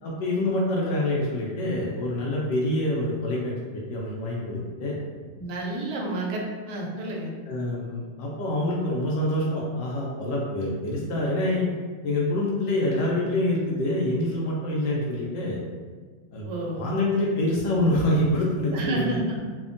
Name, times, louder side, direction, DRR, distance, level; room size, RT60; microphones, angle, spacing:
voice 1, 0.0-3.5 3.9-5.0 7.5-11.7 12.0-15.6 16.3-19.2, left 1 dB, 75° left, -4 dB, 1.2 m, -26 dB
voice 2, 5.4-7.3 16.4-16.9 18.7-19.4, right 2 dB, 75° right, -1 dB, 1.1 m, -30 dB
3.3 x 2.1 x 2.5 m, 1.5 s
omnidirectional pair, 2.0 m